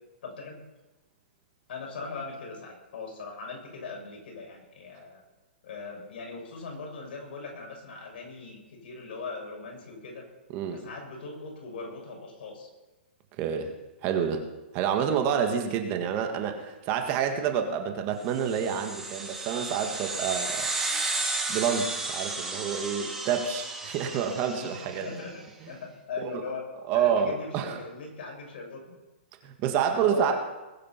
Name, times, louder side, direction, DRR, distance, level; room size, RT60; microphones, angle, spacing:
voice 1, 0.2-0.6 1.7-5.2 5.6-10.3 10.7-12.7 24.6-24.7 25.0-26.6 26.9-29.0 30.0-30.4, left 4 dB, 60° left, 0 dB, 6.5 m, -40 dB
voice 2, 10.5-10.8 13.4-13.7 14.0-14.5 14.7-20.7 21.5-25.1 26.2-26.4 26.9-27.8 29.4-30.3, right 7 dB, 30° right, 5 dB, 1.7 m, -28 dB
sound 1, 18.3-25.1, right 3 dB, 5° right, 2.3 m, -33 dB
20.5 x 9.0 x 5.8 m, 1.1 s
hypercardioid pair, 155°, 6 cm